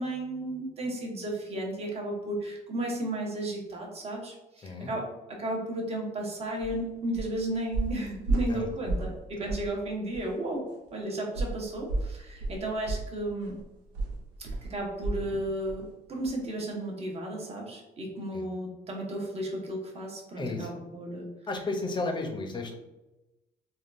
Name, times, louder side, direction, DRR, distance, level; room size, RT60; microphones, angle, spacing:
voice 1, 0.0-13.6 14.4-21.2, right 1 dB, 35° right, -1 dB, 0.9 m, -34 dB
sound 1, 6.6-6.8 7.1-7.4 7.7-9.2 9.5-9.7 10.1-10.2 11.3-15.3 15.7-15.9 16.2-16.3, right 2 dB, 90° right, 0.6 m, -32 dB
voice 2, 20.4-20.8 21.5-22.7, left 2 dB, 25° left, 3 dB, 0.6 m, -34 dB
3.5 x 2.3 x 2.5 m, 0.99 s
cardioid pair, 110°, 17 cm